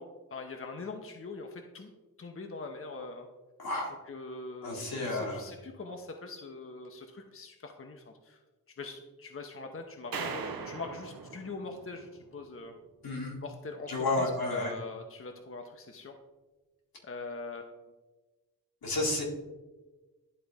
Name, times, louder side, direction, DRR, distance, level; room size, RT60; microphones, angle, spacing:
voice 1, 0.0-1.9 2.2-3.3 4.1-8.4 8.8-12.7 13.4-16.1 17.0-17.7, left 3 dB, 40° left, 4 dB, 0.7 m, -42 dB
voice 2, 3.6-4.0 4.6-5.4 13.0-13.4 13.9-14.7 18.8-19.2, left 2 dB, 80° left, -3 dB, 2.0 m, -31 dB
sound 1, 10.1-12.4, right 5 dB, 75° right, 0.7 m, -40 dB
11.0 x 3.8 x 3.5 m, 1.2 s
cardioid pair, 65°, 35 cm